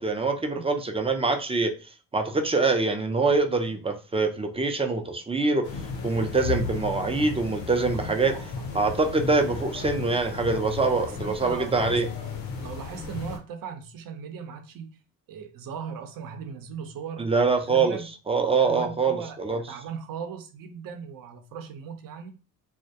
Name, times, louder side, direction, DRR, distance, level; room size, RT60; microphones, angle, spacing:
voice 1, 0.0-1.7 2.1-5.7 6.0-8.3 8.7-12.1 17.2-18.0 18.3-19.6, right 3 dB, 15° right, 0.4 m, -24 dB
sound 1, 5.6-13.4, left 5 dB, 85° left, 0.7 m, -34 dB
voice 2, 8.2-8.7 11.2-12.0 12.6-14.9 15.3-18.1 18.6-22.3, right 7 dB, 55° right, 0.6 m, -38 dB
2.3 x 2.1 x 2.7 m
supercardioid pair, 60°, 41 cm